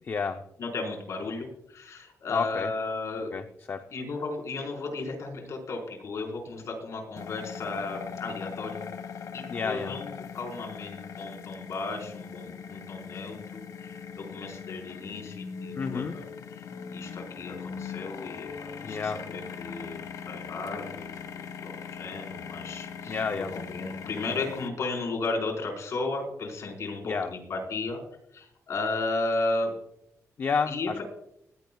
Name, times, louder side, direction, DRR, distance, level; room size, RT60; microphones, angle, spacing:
voice 1, 0.0-0.4 2.3-2.7 3.3-3.8 9.5-9.9 15.8-16.2 18.8-19.2 23.1-23.5 27.0-27.3 30.4-31.0, left 5 dB, 40° left, 6 dB, 0.7 m, -30 dB
voice 2, 0.6-3.3 3.9-8.9 9.3-16.2 16.6-23.2 23.5-28.0 28.3-29.7 30.7-31.0, left 3 dB, 60° left, 2 dB, 4.7 m, -34 dB
sound 1, 7.2-24.7, left 7 dB, 80° left, 1.4 m, -40 dB
20.0 x 15.5 x 2.4 m, 0.77 s
wide cardioid pair, 160°, 6 cm